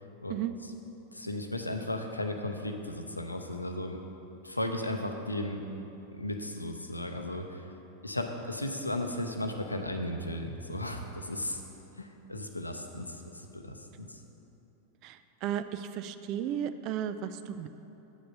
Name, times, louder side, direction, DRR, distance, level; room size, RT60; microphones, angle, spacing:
voice 1, 1.1-4.0 4.4-5.6 6.1-7.7 8.0-11.6 11.9-14.2, left 1 dB, 85° left, 4 dB, 0.6 m, -35 dB
voice 2, 15.0-17.7, right 10 dB, 40° right, 11 dB, 0.3 m, -34 dB
8.1 x 5.1 x 5.4 m, 3.0 s
figure-of-eight pair, 90°, 0 cm